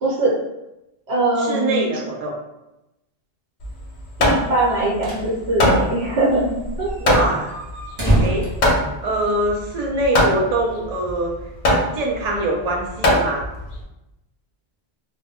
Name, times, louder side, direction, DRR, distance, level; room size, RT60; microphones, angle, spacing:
voice 1, 0.0-0.3 1.1-1.9 4.2-6.9, right 2 dB, 75° right, -6 dB, 1.1 m, -21 dB
voice 2, 1.4-2.3 7.0-7.5 8.0-8.5 9.0-11.3 11.7-13.4, right 1 dB, 45° right, -1 dB, 0.6 m, -23 dB
Hammer, 3.6-13.8, left 1 dB, 55° left, 0.6 m, -22 dB
sound 1, 4.7-5.3 5.6-5.7 5.9-6.0 6.5-9.5, right 1 dB, 25° right, 0.8 m, -24 dB
2.2 x 2.1 x 3.5 m, 0.93 s
omnidirectional pair, 1.1 m